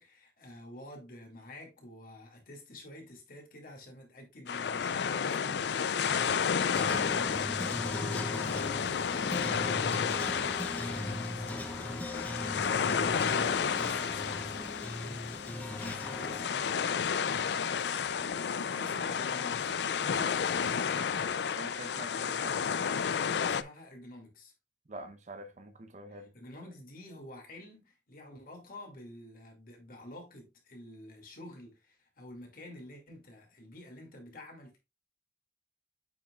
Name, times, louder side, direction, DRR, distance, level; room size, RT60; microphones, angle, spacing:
voice 1, 0.0-18.4 18.6-21.1 23.4-24.5 26.1-34.8, left 1 dB, 55° left, 2.4 m, -49 dB
sound 1, 4.5-23.6, left 7 dB, 75° left, 0.4 m, -32 dB
sound 2, 6.7-16.5, left 1 dB, 10° left, 0.6 m, -39 dB
voice 2, 21.5-22.7 24.9-26.3, right 1 dB, 40° right, 0.8 m, -46 dB
8.5 x 6.0 x 2.3 m
head